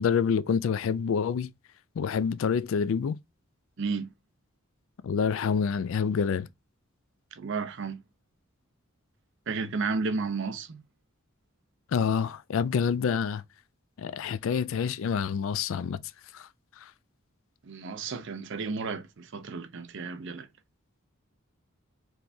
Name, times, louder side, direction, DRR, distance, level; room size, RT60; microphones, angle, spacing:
voice 1, 0.0-1.5 2.0-3.2 5.0-6.5 11.9-13.4 14.0-16.0 16.3-16.5 16.8-16.9, left 6 dB, 65° left, 0.3 m, -27 dB
voice 2, 3.8-4.1 7.3-8.0 9.5-10.8 17.6-20.5, right 4 dB, 60° right, 0.5 m, -32 dB
4.6 x 3.3 x 2.7 m
head